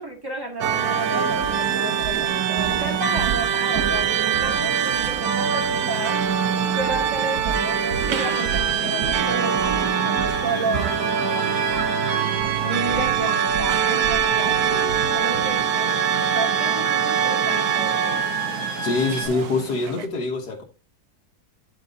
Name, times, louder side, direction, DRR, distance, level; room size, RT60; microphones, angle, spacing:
voice 1, 0.0-6.2 6.6-11.8 12.6-16.0 16.3-18.3, right 2 dB, 15° right, 0 dB, 2.1 m, -32 dB
sound 1, 0.6-20.1, right 8 dB, 75° right, 1.2 m, -23 dB
sound 2, 0.7-0.9 1.3-5.8 6.1-6.3 6.8-11.9 12.2-15.7, right 7 dB, 55° right, 1.2 m, -35 dB
sound 3, 8.2-19.3, right 3 dB, 30° left, 1.6 m, -31 dB
voice 2, 18.8-20.6, left 3 dB, 85° left, -1 dB, 1.9 m, -24 dB
10.5 x 4.1 x 3.7 m, 0.33 s
omnidirectional pair, 1.7 m